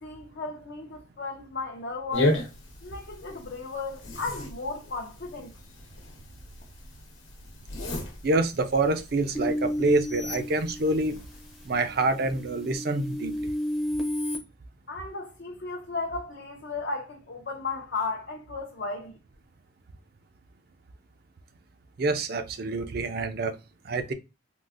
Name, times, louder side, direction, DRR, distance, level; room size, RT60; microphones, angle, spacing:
voice 1, 0.0-2.5 2.8-5.5 14.9-19.2, left 3 dB, 55° left, 0.5 m, -35 dB
sound 1, 2.1-11.7, left 1 dB, 85° left, 1.0 m, -35 dB
voice 2, 8.2-11.2 11.7-13.5 22.0-23.5 23.9-24.1, right 2 dB, 50° right, 0.4 m, -26 dB
sound 2, 9.3-11.3 11.8-14.4, left 1 dB, ahead, 0.5 m, -32 dB
3.7 x 2.4 x 2.4 m
head